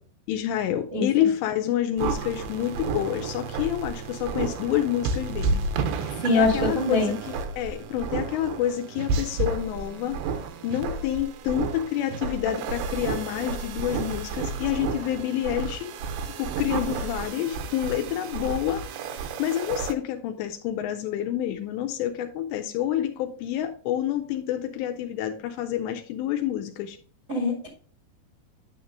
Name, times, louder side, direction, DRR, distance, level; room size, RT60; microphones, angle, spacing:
voice 1, 0.3-5.7 6.0-10.2 10.6-16.0 16.4-19.0 19.4-27.0, left 11 dB, 85° left, 6 dB, 2.7 m, -28 dB
sound 1, 2.0-19.9, right 4 dB, 80° right, 2.3 m, -31 dB
voice 2, 6.2-7.1 27.3-27.7, left 2 dB, 55° right, -5 dB, 0.8 m, -23 dB
9.2 x 7.0 x 2.5 m, 0.42 s
omnidirectional pair, 5.2 m